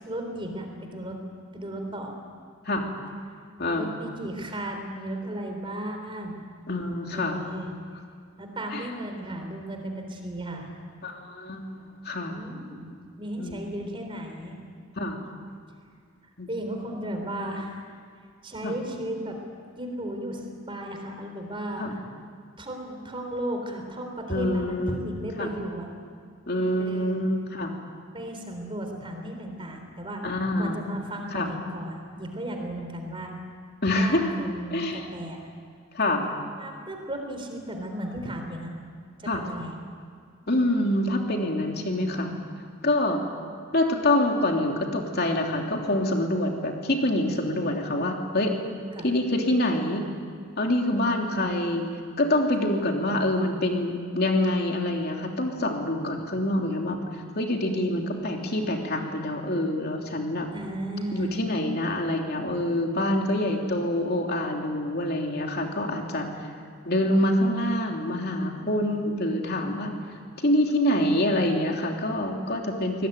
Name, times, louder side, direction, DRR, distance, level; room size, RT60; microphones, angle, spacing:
voice 1, 0.0-1.2 1.5-2.1 3.7-6.4 7.1-7.7 8.4-10.7 12.3-14.6 16.5-17.9 18.4-19.4 19.8-21.9 22.6-25.9 26.8-27.2 28.1-30.2 30.6-33.4 33.9-35.5 36.6-38.7 39.2-39.7 48.9-49.1 50.9-51.6 60.5-61.4, right 1 dB, 25° right, 4 dB, 3.8 m, -35 dB
voice 2, 3.6-3.9 6.7-7.5 8.7-8.9 11.0-12.3 13.4-13.6 15.0-15.2 16.4-16.5 18.6-18.7 21.8-21.9 24.3-25.0 25.4-25.5 26.5-27.7 30.2-30.8 31.3-31.5 33.8-34.2 34.7-35.0 35.9-36.3 39.3-39.4 40.5-42.3 42.8-43.2 43.7-48.5 49.0-50.0 50.6-51.9 52.2-60.5 61.1-66.4 66.8-69.9 70.4-73.1, left 1 dB, 50° left, 1 dB, 3.2 m, -26 dB
24.0 x 19.5 x 9.3 m, 2.2 s
head